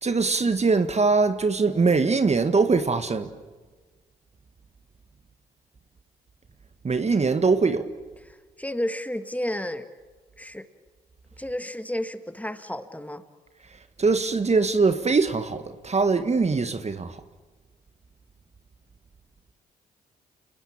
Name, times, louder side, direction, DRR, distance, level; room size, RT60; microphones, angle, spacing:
voice 1, 0.0-3.3 6.8-7.9 14.0-17.2, right 4 dB, 35° right, 1.7 m, -22 dB
voice 2, 8.2-9.9 10.4-10.7 11.4-13.2, left 1 dB, 5° left, 2.0 m, -32 dB
30.0 x 20.0 x 8.9 m
hypercardioid pair, 45°, 20 cm